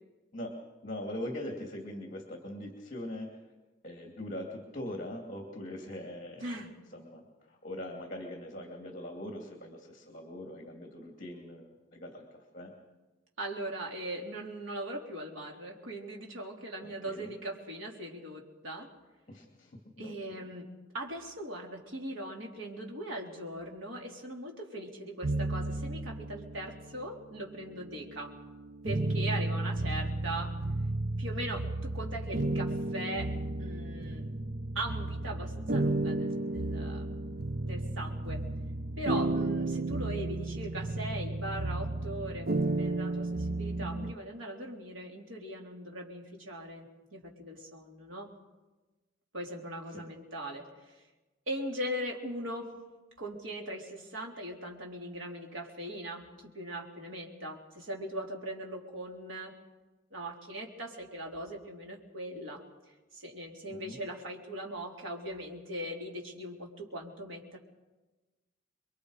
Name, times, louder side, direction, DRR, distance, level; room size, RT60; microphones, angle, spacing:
voice 1, 0.8-3.4 3.8-6.6 6.9-12.7 16.8-17.3 19.3-20.5 43.7-44.1 49.9-50.1 63.7-64.0, left 1 dB, 40° left, 2 dB, 2.6 m, -42 dB
voice 2, 13.4-18.9 20.0-20.7 20.9-28.3 28.8-30.6 31.2-33.3 33.6-34.3 34.8-37.3 37.6-38.4 39.0-46.9 47.1-48.3 49.3-50.6 50.9-51.0 51.5-52.7 53.2-59.5 60.1-62.6 63.1-67.6, right 1 dB, 85° right, 0 dB, 3.7 m, -40 dB
sound 1, 25.2-26.9 27.6-44.1, right 2 dB, 50° right, 0.7 m, -33 dB
28.5 x 22.5 x 5.0 m, 1.2 s
head